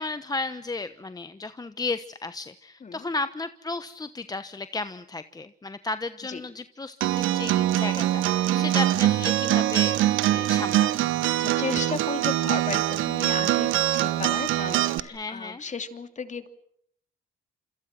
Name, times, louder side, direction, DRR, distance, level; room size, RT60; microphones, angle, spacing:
voice 1, 0.0-10.9 15.1-15.6, left 3 dB, 20° left, 12 dB, 1.1 m, -34 dB
Acoustic guitar, 7.0-15.0, right 13 dB, 85° right, 1.2 m, -23 dB
voice 2, 11.3-16.5, left 5 dB, 35° left, 9 dB, 2.8 m, -35 dB
28.0 x 26.5 x 6.0 m, 0.68 s
cardioid pair, 90°, 20 cm